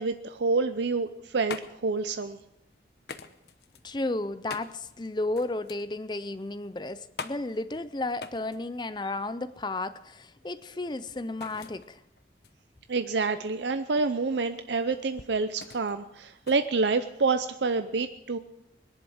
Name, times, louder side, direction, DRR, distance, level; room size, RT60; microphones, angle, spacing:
voice 1, 0.0-2.4 12.9-18.4, right 4 dB, 85° right, 10 dB, 0.6 m, -28 dB
sound 1, 1.0-17.5, left 5 dB, 65° left, 0.9 m, -46 dB
voice 2, 3.8-12.0, left 2 dB, 25° left, 14 dB, 0.5 m, -33 dB
21.0 x 11.0 x 6.3 m, 0.89 s
head